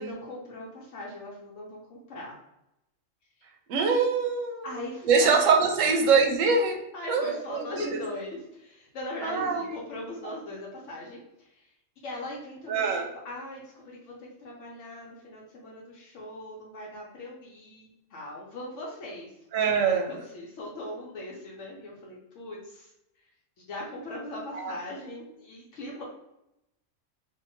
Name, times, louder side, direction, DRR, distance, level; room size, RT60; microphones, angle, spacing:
voice 1, 0.0-2.3 4.6-5.4 5.8-5.9 6.9-11.7 12.0-12.8 13.2-19.3 19.6-22.9 23.7-26.0, left 1 dB, 75° left, -3 dB, 1.0 m, -40 dB
voice 2, 3.7-4.7 5.0-6.8 7.1-8.0 9.2-9.7 12.7-13.1 19.5-20.1 24.5-24.7, right 5 dB, 85° right, 3 dB, 1.0 m, -24 dB
2.7 x 2.4 x 2.5 m, 0.86 s
omnidirectional pair, 1.3 m